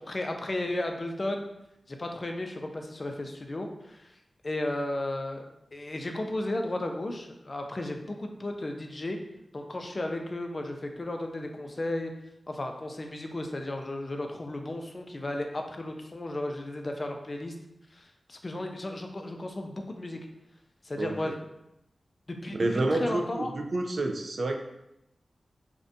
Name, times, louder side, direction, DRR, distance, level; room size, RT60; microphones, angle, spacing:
voice 1, 0.1-1.5 1.9-4.1 4.4-5.5 5.7-9.2 9.5-12.1 12.5-17.5 17.9-20.2 20.8-21.4 22.3-23.5, left 1 dB, 45° left, 3 dB, 0.3 m, -34 dB
voice 2, 21.0-21.3 22.6-24.6, right 2 dB, 65° right, 3 dB, 0.3 m, -29 dB
2.5 x 2.1 x 2.5 m, 0.85 s
cardioid pair, 45°, 0 cm